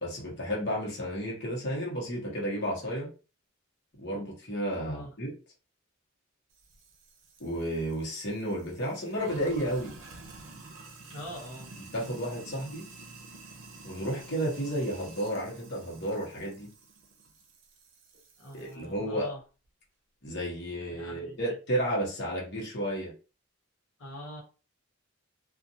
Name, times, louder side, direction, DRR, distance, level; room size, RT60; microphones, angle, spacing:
voice 1, 0.0-3.1 4.0-5.3 7.4-9.9 11.8-12.9 13.8-16.7 18.5-19.3 20.2-23.1, equal, 55° left, -4 dB, 1.1 m, -32 dB
voice 2, 4.8-5.1 11.1-11.7 18.4-19.4 20.9-21.4 24.0-24.4, equal, 75° left, -4 dB, 0.9 m, -43 dB
Sink (filling or washing), 6.5-18.9, right 3 dB, 70° right, 0.6 m, -50 dB
2.5 x 2.4 x 2.7 m, 0.34 s
head